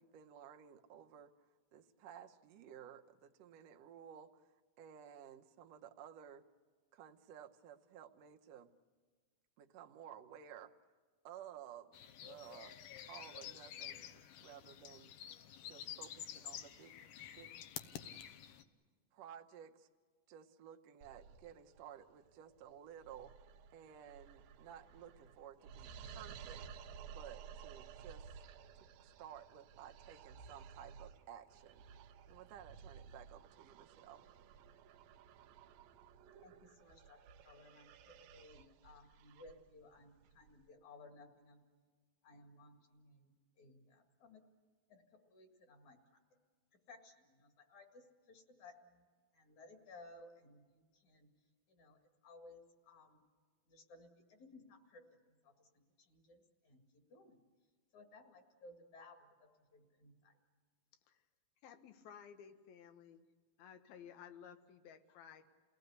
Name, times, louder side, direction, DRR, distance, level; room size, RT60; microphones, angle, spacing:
voice 1, 0.0-1.3 1.7-6.5 6.9-8.7 9.6-10.7 11.2-12.8 13.1-15.1 15.7-16.9 17.4-17.5 19.1-19.9 20.3-23.3 23.7-26.7 27.0-28.4 28.8-31.8 32.3-34.2, right 9 dB, 65° right, 5 dB, 1.7 m, -55 dB
sound 1, 11.9-18.6, left 10 dB, 75° left, 2.4 m, -50 dB
sound 2, 21.0-40.7, right 7 dB, 85° right, 2.6 m, -56 dB
voice 2, 36.4-41.6 42.2-44.4 44.9-46.0 46.9-49.1 49.3-51.3 51.7-53.2 53.7-55.7 56.0-56.8 57.1-57.4 57.9-60.3, left 2 dB, 55° left, 5 dB, 3.3 m, -60 dB
voice 3, 61.6-63.2 63.6-65.5, left 8 dB, 90° left, 9 dB, 3.1 m, -56 dB
29.0 x 18.0 x 8.1 m, 1.6 s
omnidirectional pair, 4.1 m